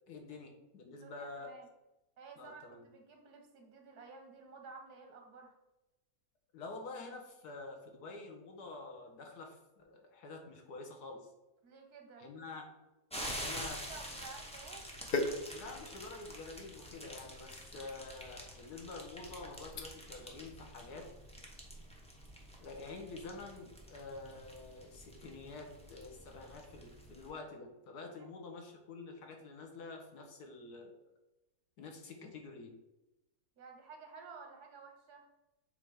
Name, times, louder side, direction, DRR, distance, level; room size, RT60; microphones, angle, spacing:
voice 1, 0.1-1.5 2.4-2.8 6.5-11.3 12.2-12.7 13.4-13.8 15.5-21.1 22.6-31.0 31.8-32.7, left 3 dB, 80° left, 3 dB, 1.6 m, -48 dB
voice 2, 0.9-1.7 2.2-5.6 11.6-12.3 13.1-14.9 28.1-28.3 33.6-35.3, right 4 dB, 80° right, 3 dB, 1.6 m, -53 dB
sound 1, 13.1-27.3, equal, 5° left, 0.7 m, -48 dB
sound 2, 15.0-20.2 20.6-20.9, left 2 dB, 60° left, 0.6 m, -43 dB
7.4 x 2.8 x 4.8 m, 1.0 s
omnidirectional pair, 1.7 m